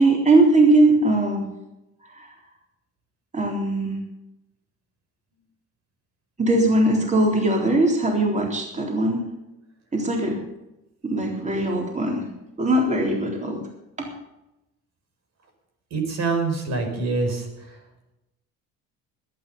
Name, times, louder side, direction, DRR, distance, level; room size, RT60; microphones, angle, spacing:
voice 1, 0.0-1.4 2.1-2.3 3.3-4.0 6.4-9.2 9.9-10.4 11.0-12.2 12.6-13.6, right 2 dB, 25° right, 0 dB, 3.9 m, -20 dB
voice 2, 15.9-17.8, right 3 dB, 60° right, 4 dB, 5.1 m, -26 dB
20.0 x 9.4 x 5.5 m, 0.94 s
cardioid pair, 85°, 31 cm